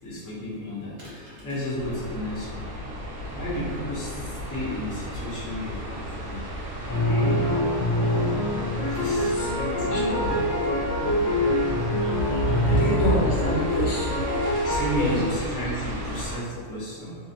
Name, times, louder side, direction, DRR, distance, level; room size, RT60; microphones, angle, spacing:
voice 1, 0.0-2.7 3.3-6.4 6.9-7.5 8.8-10.4 12.5-13.0 14.6-17.2, left 1 dB, 25° left, -10 dB, 0.4 m, -33 dB
sound 1, 1.0-1.8 8.9-9.5, equal, 40° right, 0.4 m, -43 dB
sound 2, 1.8-16.4, equal, 70° right, 0.9 m, -34 dB
sound 3, 6.9-14.8, left 1 dB, 55° left, 0.9 m, -25 dB
voice 2, 9.8-10.5 11.0-11.2 12.0-14.2 14.7-15.2, equal, 85° left, -6 dB, 1.2 m, -27 dB
2.6 x 2.1 x 2.6 m, 2.1 s
omnidirectional pair, 1.5 m